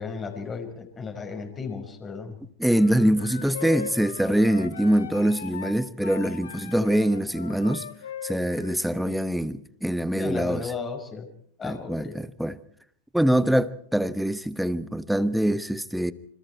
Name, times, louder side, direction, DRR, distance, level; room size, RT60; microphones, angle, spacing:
voice 1, 0.0-2.4 6.8-6.9 10.2-11.3 11.6-12.2, left 5 dB, 20° left, 5.3 m, -34 dB
voice 2, 2.6-7.8 8.2-10.7 11.6-12.6 13.1-16.1, right 1 dB, ahead, 1.1 m, -24 dB
sound 1, 2.7-9.2, left 8 dB, 65° left, 1.9 m, -39 dB
26.5 x 26.5 x 4.5 m
figure-of-eight pair, 90°, 0 cm